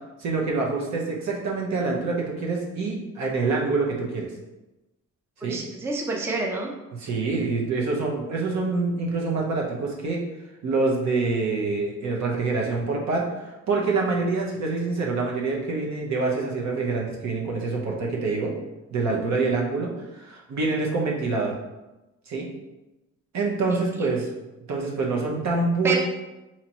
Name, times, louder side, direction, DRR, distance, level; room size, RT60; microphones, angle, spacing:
voice 1, 0.2-4.3 5.4-5.6 6.9-10.2 10.6-13.3 13.7-18.5 18.9-21.6 22.3-22.4 23.3-24.3 24.7-26.0, right 3 dB, 65° right, -1 dB, 1.0 m, -26 dB
voice 2, 5.4-6.7 23.7-24.1 25.8-26.0, right 3 dB, 10° right, 0 dB, 0.5 m, -28 dB
4.0 x 3.0 x 2.9 m, 1.0 s
cardioid pair, 90°, 30 cm